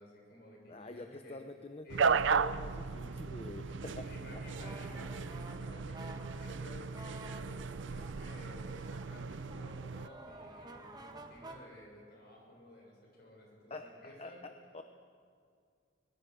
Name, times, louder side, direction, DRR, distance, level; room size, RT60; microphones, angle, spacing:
voice 1, 0.0-1.4 1.8-2.1 2.5-2.6 3.0-3.3 3.6-14.4, left 1 dB, 50° left, -1 dB, 6.8 m, -53 dB
voice 2, 0.7-3.7 4.0-4.1 4.5-4.6 13.7-14.8, left 2 dB, 30° left, 7 dB, 0.8 m, -46 dB
sound 1, 1.9-10.1, right 5 dB, 65° right, 0.5 m, -36 dB
sound 2, 4.4-11.6, right 2 dB, 20° right, 1.2 m, -52 dB
23.5 x 20.0 x 6.5 m, 2.3 s
head